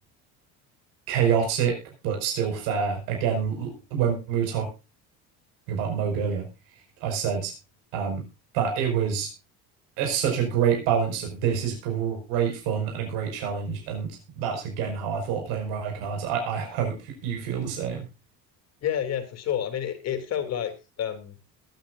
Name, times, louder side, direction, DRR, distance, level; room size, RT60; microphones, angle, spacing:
voice 1, 1.1-1.8 2.0-4.7 5.7-6.5 7.0-7.5 7.9-8.2 8.5-9.3 10.0-18.0, right 7 dB, 80° right, 2 dB, 5.5 m, -27 dB
voice 2, 18.8-20.7 21.0-21.4, left 9 dB, 45° left, 8 dB, 3.0 m, -29 dB
22.0 x 9.1 x 2.6 m, 0.29 s
cardioid pair, 130°, 35 cm